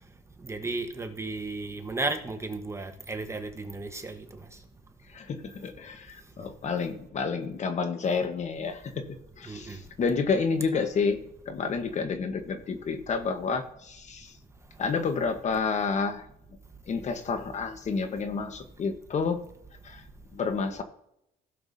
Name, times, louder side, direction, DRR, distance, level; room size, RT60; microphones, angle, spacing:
voice 1, 0.4-4.2 9.5-9.8, right 3 dB, 15° right, 1.2 m, -34 dB
voice 2, 5.1-9.0 9.4-11.2 11.5-14.3 14.8-16.2 16.9-19.4 19.8-20.0 20.3-20.8, left 5 dB, 45° left, 1.2 m, -29 dB
16.5 x 6.8 x 2.7 m
cardioid pair, 110°, 17 cm